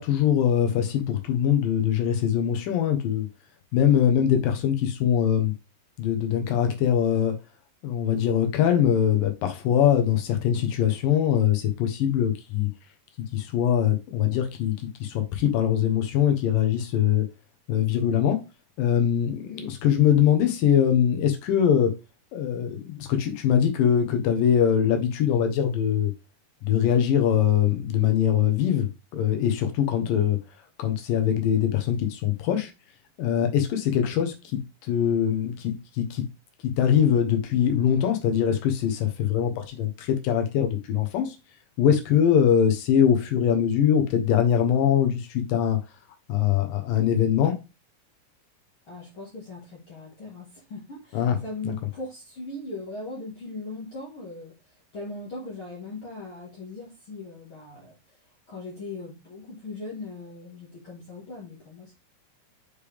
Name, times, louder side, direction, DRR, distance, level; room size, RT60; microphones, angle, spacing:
voice 1, 0.0-3.3 3.7-5.5 6.0-7.3 7.8-12.7 13.3-14.7 15.0-17.2 17.7-18.4 18.8-21.9 22.3-26.1 26.6-28.9 29.1-30.4 30.8-32.7 33.2-34.6 34.9-36.2 36.8-41.4 41.8-45.8 46.3-47.5 51.1-51.4 51.6-51.7, left 9 dB, 80° left, 2.8 m, -22 dB
voice 2, 48.9-58.2 58.5-61.9, left 2 dB, 45° left, 2.2 m, -39 dB
6.6 x 5.2 x 3.4 m
omnidirectional pair, 3.9 m